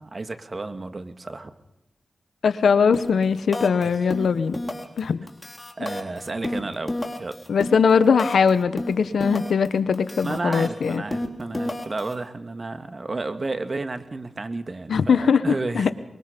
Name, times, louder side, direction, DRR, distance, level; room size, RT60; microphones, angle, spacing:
voice 1, 0.0-1.5 3.8-3.9 5.8-7.4 10.2-15.9, right 3 dB, 45° right, 9 dB, 1.9 m, -32 dB
voice 2, 2.4-4.6 5.0-5.2 7.5-11.0 14.9-15.9, left 6 dB, 85° left, 13 dB, 1.1 m, -20 dB
sound 1, 2.9-3.2 3.5-3.8 4.1-5.0 5.3-8.5 8.8-9.7 9.9-12.1, left 1 dB, 25° left, 3.5 m, -30 dB
24.5 x 22.0 x 5.3 m, 0.87 s
cardioid pair, 50°, 0 cm